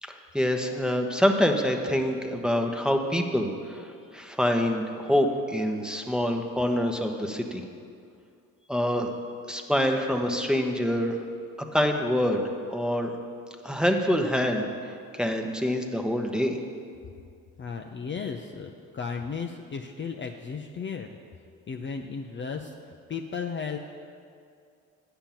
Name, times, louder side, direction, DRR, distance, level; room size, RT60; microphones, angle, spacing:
voice 1, 0.0-7.6 8.7-9.1 9.5-11.2 11.7-12.4 12.7-13.1 13.6-16.6, equal, ahead, 3 dB, 1.0 m, -26 dB
voice 2, 17.6-21.2 21.7-23.8, left 5 dB, 30° left, 3 dB, 0.6 m, -35 dB
8.8 x 5.6 x 7.4 m, 2.3 s
hypercardioid pair, 60°, 39 cm